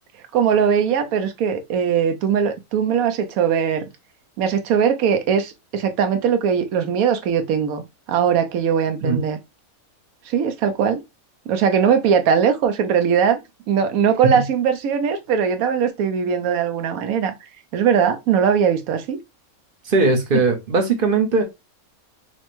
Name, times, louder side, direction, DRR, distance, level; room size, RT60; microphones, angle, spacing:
voice 1, 0.3-3.9 4.4-9.4 10.2-11.0 11.5-13.4 13.7-17.3 17.7-19.2, right 7 dB, 75° right, 1.1 m, -20 dB
voice 2, 19.9-21.4, right 3 dB, 45° right, 0.8 m, -19 dB
5.7 x 2.1 x 3.0 m
omnidirectional pair, 1.5 m